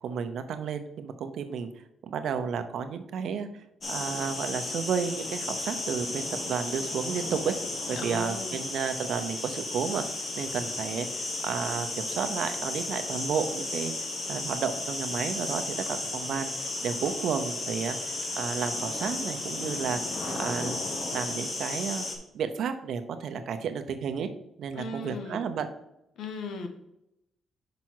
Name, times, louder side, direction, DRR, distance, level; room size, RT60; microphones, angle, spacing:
voice 1, 0.0-1.7 2.1-3.5 3.9-7.5 7.9-10.0 10.4-13.9 14.3-15.6 15.9-20.0 20.4-20.8 21.1-22.1 22.3-24.3 24.6-25.7, right 6 dB, 70° right, 8 dB, 0.8 m, -32 dB
sound 1, 3.8-22.2, left 2 dB, 45° left, 1.6 m, -34 dB
voice 2, 8.0-8.7 24.7-25.4 26.2-26.7, left 3 dB, 80° left, 6 dB, 1.1 m, -37 dB
5.9 x 5.2 x 4.6 m, 0.85 s
cardioid pair, 90°, 0 cm